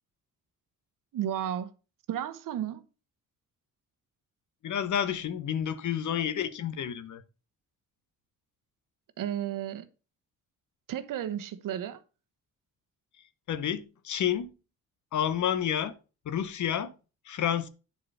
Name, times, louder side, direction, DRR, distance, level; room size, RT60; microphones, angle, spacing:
voice 1, 1.1-1.7 2.1-2.8 9.2-9.9 10.9-12.0, right 10 dB, 75° right, 1.1 m, -33 dB
voice 2, 4.6-7.2 13.5-14.5 15.1-16.0 16.2-16.9 17.2-17.7, left 9 dB, 65° left, 1.1 m, -30 dB
10.0 x 4.8 x 5.5 m
cardioid pair, 145°, 32 cm